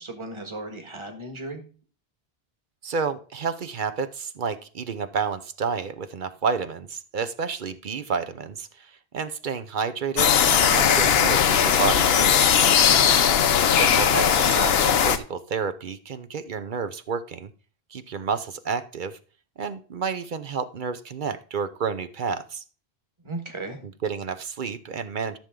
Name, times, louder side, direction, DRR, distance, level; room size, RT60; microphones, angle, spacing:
voice 1, 0.0-1.6 12.7-13.1 23.2-23.8, right 2 dB, 25° right, 5 dB, 1.7 m, -36 dB
voice 2, 2.8-12.6 13.8-17.5 17.9-19.2 19.6-22.6 24.0-25.4, right 5 dB, 55° right, 10 dB, 0.8 m, -30 dB
sound 1, 10.2-15.2, left 8 dB, 70° left, 0.9 m, -19 dB
13.0 x 6.9 x 3.7 m, 0.40 s
omnidirectional pair, 1.1 m